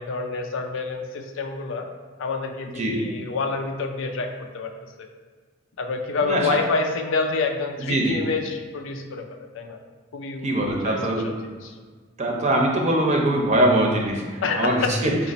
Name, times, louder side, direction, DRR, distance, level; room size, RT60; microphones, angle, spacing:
voice 1, 0.0-1.9 2.2-4.3 4.5-4.7 5.0-5.1 5.8-9.8 10.1-11.7 14.4-14.9 15.2-15.3, left 4 dB, 70° left, 4 dB, 0.5 m, -28 dB
voice 2, 7.8-8.2 10.4-11.3 12.2-15.1, right 1 dB, 35° right, 0 dB, 0.6 m, -22 dB
4.0 x 2.5 x 4.1 m, 1.5 s
head